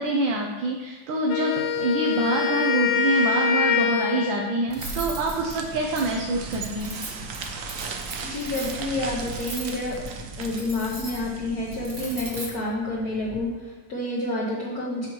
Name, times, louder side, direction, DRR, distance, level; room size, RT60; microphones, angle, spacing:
voice 1, 0.0-6.9, right 2 dB, 85° right, 0 dB, 1.5 m, -25 dB
Wind instrument woodwind instrument, 1.3-4.6, left 8 dB, 75° left, 1.1 m, -25 dB
Cutlery silverware, 4.7-13.4, right 1 dB, 20° right, 0.6 m, -40 dB
sound 1, 4.8-12.3, right 4 dB, 60° right, 0.9 m, -37 dB
voice 2, 8.2-10.0 10.4-15.1, left 2 dB, 55° left, -5 dB, 1.4 m, -29 dB
8.5 x 5.9 x 3.1 m, 1.2 s
omnidirectional pair, 2.0 m